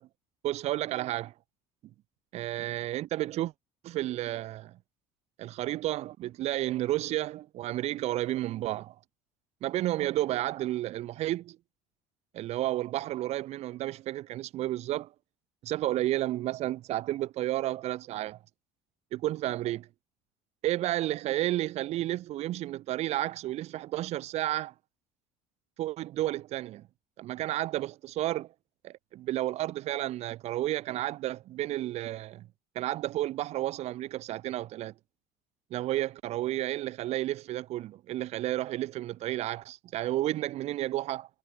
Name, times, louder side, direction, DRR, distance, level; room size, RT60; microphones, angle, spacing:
voice 1, 0.4-1.3 2.3-3.5 3.8-4.8 5.4-9.0 9.6-11.6 12.3-15.1 15.6-18.4 19.1-19.9 20.6-24.7 25.8-26.8 27.2-28.5 28.8-32.5 32.8-34.9 35.7-41.3, right 14 dB, 55° right, 6.9 m, -31 dB
cardioid pair, 135°, 13 cm